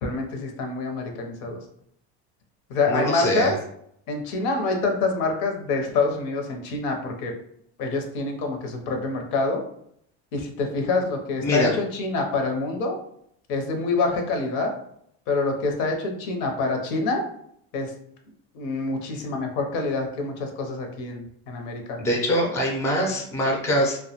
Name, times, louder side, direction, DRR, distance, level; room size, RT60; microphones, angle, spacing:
voice 1, 0.0-1.6 2.7-3.6 4.1-7.3 7.8-9.6 10.3-13.0 13.5-14.7 15.3-17.2 17.7-17.9 18.5-22.0, left 3 dB, 70° left, 4 dB, 0.6 m, -26 dB
voice 2, 2.9-3.5 11.4-11.7 22.0-24.0, equal, 10° left, 0 dB, 0.4 m, -23 dB
2.2 x 2.1 x 2.8 m, 0.70 s
supercardioid pair, 125°, 32 cm